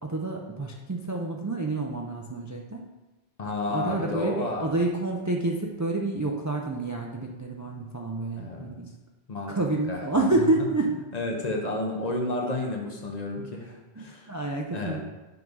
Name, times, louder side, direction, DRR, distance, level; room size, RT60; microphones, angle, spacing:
voice 1, 0.0-2.8 3.7-8.9 9.5-10.9 14.0-15.0, right 2 dB, 30° right, -1 dB, 0.3 m, -28 dB
voice 2, 3.4-4.7 8.4-8.7 9.3-9.5 9.9-10.1 11.1-14.3 14.7-15.0, left 2 dB, 45° left, 1 dB, 0.9 m, -31 dB
5.9 x 3.6 x 5.3 m, 1.1 s
omnidirectional pair, 1.1 m